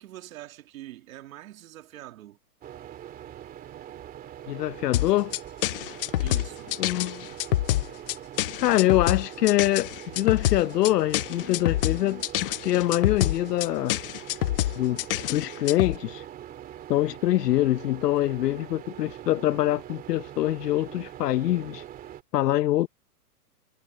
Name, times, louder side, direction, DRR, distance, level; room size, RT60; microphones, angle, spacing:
voice 1, 0.0-2.4 6.2-6.8, right 14 dB, 60° right, 2.5 m, -44 dB
sound 1, 2.6-22.2, right 11 dB, 20° right, 2.5 m, -43 dB
voice 2, 4.5-5.3 6.8-7.3 8.6-14.0 14.8-16.2 16.9-21.8 22.3-22.9, left 14 dB, 85° left, 0.7 m, -24 dB
sound 2, 4.9-16.0, left 14 dB, 35° left, 0.6 m, -27 dB
hypercardioid pair, 160°, 47 cm